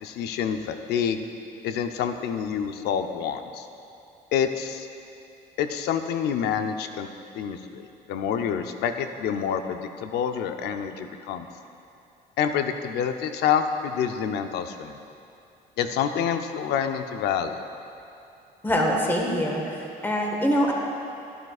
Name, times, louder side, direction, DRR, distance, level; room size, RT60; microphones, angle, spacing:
voice 1, 0.0-1.2 1.6-3.7 4.3-4.9 5.6-7.1 7.3-11.5 12.4-15.0 15.8-17.7, left 8 dB, 75° left, 7 dB, 0.6 m, -27 dB
voice 2, 18.6-19.8 20.0-20.7, equal, 10° left, -1 dB, 1.5 m, -23 dB
12.0 x 11.0 x 2.4 m, 2.6 s
cardioid pair, 110°, 17 cm